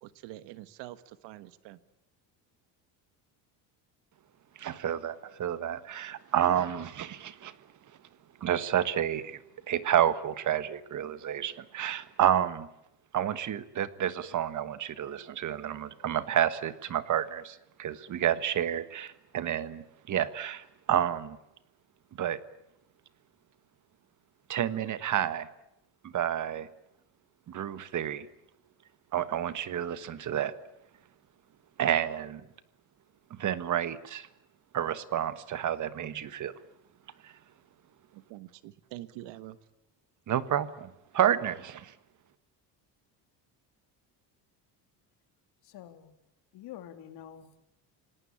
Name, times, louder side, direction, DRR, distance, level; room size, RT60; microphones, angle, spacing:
voice 1, 0.0-1.8 38.1-39.6, right 15 dB, 80° right, 14 dB, 1.6 m, -45 dB
voice 2, 4.6-7.5 8.4-9.4 9.7-12.7 13.1-21.4 22.2-22.4 24.5-25.5 26.1-26.7 27.5-28.3 29.1-30.5 31.8-32.4 33.3-34.3 34.7-36.5 37.2-37.3 40.3-41.9, right 10 dB, 45° right, 14 dB, 1.5 m, -30 dB
voice 3, 45.6-46.1 46.5-47.6, left 11 dB, 65° left, 8 dB, 3.0 m, -47 dB
27.5 x 18.5 x 8.7 m, 0.85 s
cardioid pair, 125°, 42 cm